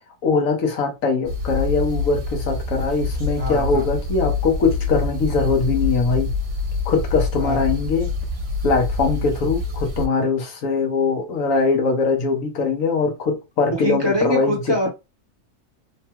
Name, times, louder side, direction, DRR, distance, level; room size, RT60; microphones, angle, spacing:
voice 1, 0.2-6.3 6.9-8.1 8.6-14.8, left 4 dB, 80° left, 1.2 m, -21 dB
sound 1, 1.2-10.1, left 3 dB, 55° right, 1.1 m, -26 dB
voice 2, 3.4-3.8 7.4-7.6 13.7-14.9, equal, 20° right, 0.9 m, -24 dB
3.2 x 2.2 x 2.8 m
omnidirectional pair, 1.4 m